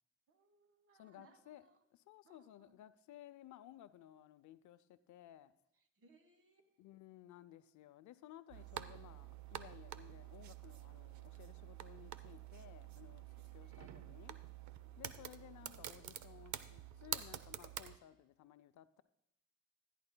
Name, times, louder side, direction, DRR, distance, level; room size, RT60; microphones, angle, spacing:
voice 1, 0.3-1.8 2.2-2.7 5.8-6.8 8.5-9.0 13.2-14.0 14.8-16.0, right 3 dB, 50° right, 9 dB, 1.2 m, -69 dB
voice 2, 0.9-1.6 1.9-5.5 6.8-14.4 15.0-19.0, left 12 dB, 70° left, 14 dB, 0.5 m, -58 dB
sound 1, 8.5-18.0, right 11 dB, 65° right, 0.6 m, -48 dB
16.0 x 10.0 x 2.2 m, 0.81 s
cardioid pair, 90°, 30 cm